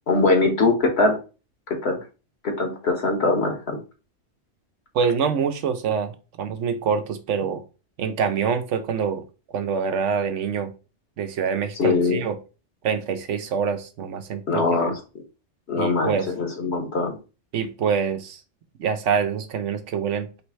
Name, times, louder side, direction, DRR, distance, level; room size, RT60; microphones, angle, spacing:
voice 1, 0.1-1.2 1.8-2.0 2.4-3.8 11.8-12.2 14.5-15.0 15.7-17.2, left 3 dB, 60° left, 3 dB, 1.4 m, -22 dB
voice 2, 4.9-7.6 8.0-9.2 9.5-10.7 11.2-12.4 12.8-14.9 15.8-16.3 17.5-18.4 18.8-20.3, right 6 dB, 80° right, 8 dB, 1.0 m, -25 dB
3.3 x 3.2 x 4.6 m, 0.32 s
omnidirectional pair, 1.2 m